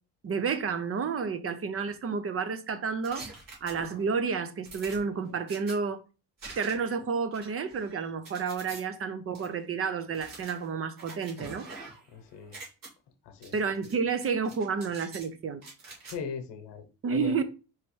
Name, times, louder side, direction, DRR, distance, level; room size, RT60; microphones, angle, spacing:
voice 1, 0.2-3.3 3.6-6.0 6.6-11.7 13.5-15.6 17.0-17.4, right 5 dB, 35° right, 0.6 m, -30 dB
sound 1, 3.0-4.1 4.6-5.7 6.4-6.9 7.3-8.8 9.3-9.5 10.1-12.1 12.4-12.9 13.4-13.9 14.2-15.3 15.6-16.1, right 3 dB, 50° right, 2.1 m, -46 dB
voice 2, 12.1-12.7 13.2-13.5 16.1-17.4, left 6 dB, 90° left, 0.9 m, -39 dB
4.7 x 3.1 x 3.1 m
cardioid pair, 105°, 41 cm